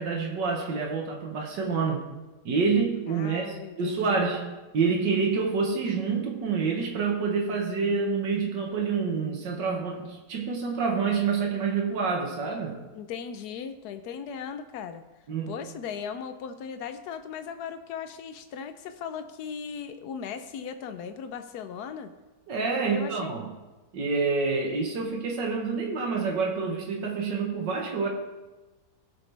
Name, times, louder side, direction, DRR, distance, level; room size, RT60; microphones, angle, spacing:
voice 1, 0.0-2.0 2.5-4.4 4.7-12.8 15.3-15.5 22.5-23.5 23.9-28.1, right 5 dB, 85° right, 0 dB, 2.0 m, -27 dB
voice 2, 3.1-4.5 12.9-15.0 15.5-22.1 22.9-23.4, left 7 dB, 70° left, 9 dB, 1.2 m, -38 dB
17.0 x 6.2 x 3.4 m, 1.2 s
omnidirectional pair, 1.9 m